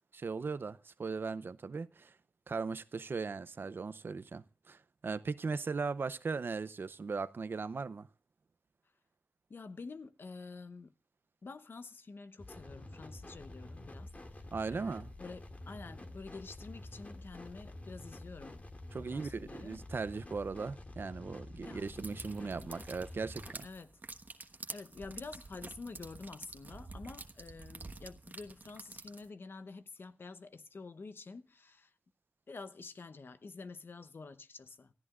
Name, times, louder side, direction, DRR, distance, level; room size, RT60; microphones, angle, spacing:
voice 1, 0.1-2.1 2.5-8.1 14.5-15.1 18.9-23.7, right 4 dB, 75° right, 0.6 m, -38 dB
voice 2, 9.5-10.9 11.4-18.6 19.0-19.8 21.6-21.9 22.1-22.7 23.6-24.0 24.7-31.9 32.5-34.9, left 4 dB, 80° left, 0.9 m, -49 dB
sound 1, 12.4-23.5, left 1 dB, 40° left, 2.1 m, -48 dB
sound 2, 21.9-29.3, right 3 dB, 55° right, 1.2 m, -48 dB
28.5 x 14.0 x 2.4 m
wide cardioid pair, 60°, 4 cm